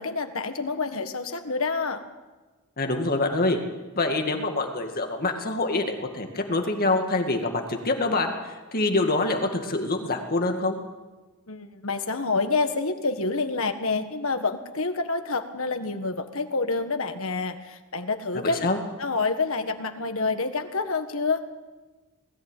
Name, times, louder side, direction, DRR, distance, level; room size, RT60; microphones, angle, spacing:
voice 1, 0.0-2.0 11.5-18.7 19.0-21.4, left 3 dB, 65° left, 7 dB, 1.7 m, -28 dB
voice 2, 2.8-3.6 4.0-10.8 18.3-18.8, left 2 dB, 45° left, 4 dB, 2.2 m, -25 dB
20.5 x 14.5 x 9.2 m, 1.2 s
head